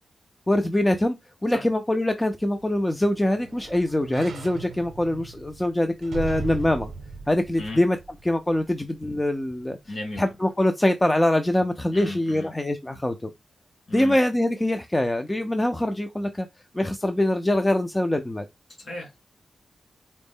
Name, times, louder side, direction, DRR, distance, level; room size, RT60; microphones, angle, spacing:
voice 1, 0.5-1.2 1.4-6.9 7.3-8.0 8.2-9.8 10.2-13.3 13.9-16.5 16.7-18.5, left 1 dB, 15° left, 0.3 m, -23 dB
sound 1, 2.4-8.7 9.2-9.3, right 4 dB, 75° right, 0.6 m, -39 dB
voice 2, 9.9-10.3 11.9-12.5 13.9-14.2 18.8-19.2, left 2 dB, 50° left, 2.4 m, -35 dB
4.1 x 2.0 x 3.5 m
wide cardioid pair, 125°, 0 cm